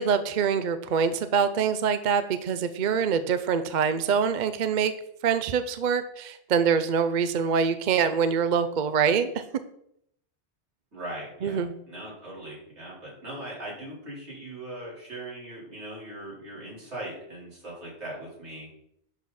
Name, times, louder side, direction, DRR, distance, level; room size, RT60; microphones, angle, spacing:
voice 1, 0.0-4.9 5.2-9.4 11.4-11.8, right 6 dB, 50° right, 11 dB, 0.6 m, -25 dB
voice 2, 10.9-18.7, right 1 dB, 75° right, -6 dB, 4.5 m, -40 dB
11.0 x 6.3 x 4.2 m, 0.73 s
omnidirectional pair, 1.2 m